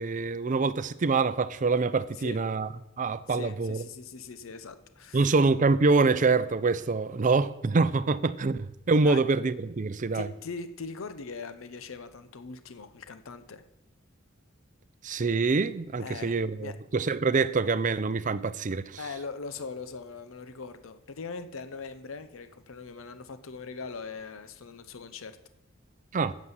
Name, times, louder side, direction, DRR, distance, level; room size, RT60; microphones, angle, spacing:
voice 1, 0.0-2.7 3.0-3.8 5.1-10.3 15.0-19.0 26.1-26.3, right 4 dB, 40° right, 0.5 m, -25 dB
voice 2, 3.3-5.4 9.0-9.2 10.1-13.6 16.0-16.3 16.6-16.7 19.0-25.4, left 4 dB, 80° left, 0.7 m, -41 dB
9.6 x 7.4 x 7.9 m
head